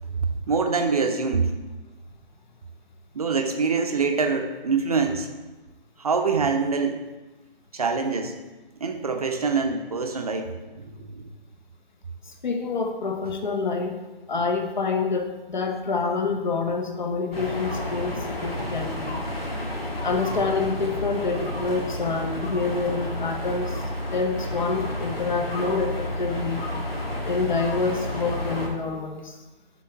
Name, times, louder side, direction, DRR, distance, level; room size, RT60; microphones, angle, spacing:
voice 1, 0.2-1.5 3.1-5.3 6.0-7.0 7.7-8.3 8.8-10.5 10.8-11.3, right 4 dB, 40° right, 5 dB, 0.6 m, -25 dB
voice 2, 12.3-13.9 14.3-19.2 20.0-23.8 24.1-26.6 27.2-29.4, left 4 dB, 50° left, 4 dB, 0.9 m, -27 dB
sound 1, 17.3-28.7, left 1 dB, 85° left, 1.8 m, -31 dB
8.5 x 3.7 x 4.5 m, 1.2 s
figure-of-eight pair, 155°, 29 cm